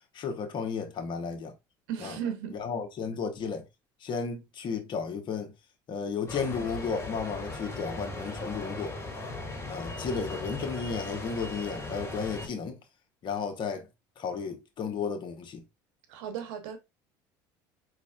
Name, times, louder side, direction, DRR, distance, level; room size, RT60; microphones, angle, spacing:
voice 1, 0.1-1.5 2.0-2.2 2.5-3.6 4.0-5.5 5.9-8.9 9.7-12.8 13.2-13.9 14.2-15.6, left 5 dB, 50° left, 1.1 m, -33 dB
voice 2, 1.9-2.6 16.1-16.8, right 8 dB, 75° right, 0.9 m, -35 dB
sound 1, 6.3-12.5, left 2 dB, 25° left, 2.1 m, -38 dB
5.2 x 3.1 x 2.4 m
supercardioid pair, 85°, 11 cm